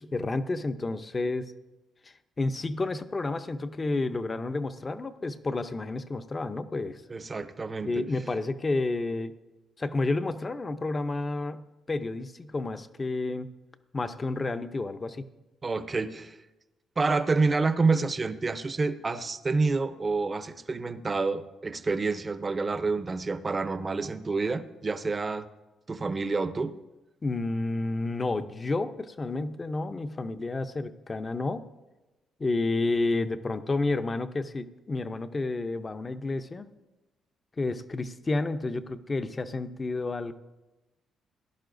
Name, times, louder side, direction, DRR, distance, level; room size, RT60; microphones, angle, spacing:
voice 1, 0.0-1.5 2.0-7.0 7.8-9.3 9.8-13.5 13.9-15.3 27.2-31.7 32.4-36.7 37.6-40.3, left 2 dB, 30° left, 10 dB, 0.7 m, -30 dB
voice 2, 7.1-8.0 15.6-16.4 17.0-25.5 25.9-26.8, right 3 dB, 30° right, 11 dB, 0.7 m, -28 dB
17.0 x 11.0 x 2.6 m, 1.1 s
cardioid pair, 90°, 0 cm